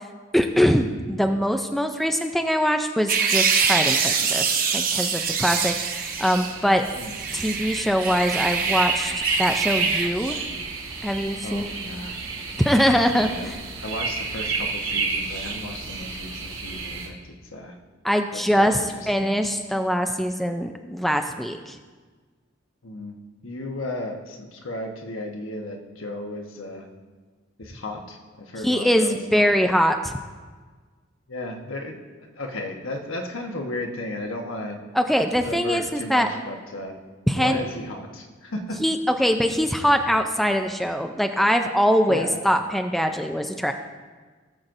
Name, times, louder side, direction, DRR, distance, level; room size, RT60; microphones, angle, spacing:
voice 1, 0.3-6.8 7.3-10.4 11.0-11.7 12.6-13.6 18.0-21.8 28.6-30.1 34.9-36.3 37.3-37.6 38.8-43.7, equal, ahead, 5 dB, 0.4 m, -23 dB
sound 1, 3.1-6.6 6.8-10.1, right 6 dB, 45° right, 0.9 m, -24 dB
sound 2, 5.1-17.1, right 4 dB, 85° right, 2.1 m, -31 dB
voice 2, 11.4-12.2 13.2-13.5 13.8-17.8 18.3-19.5 22.8-26.9 27.6-29.8 31.3-34.8 35.4-37.0 37.3-38.8 42.1-42.5, left 1 dB, 80° left, 2 dB, 1.2 m, -34 dB
17.0 x 7.5 x 2.6 m, 1.4 s
head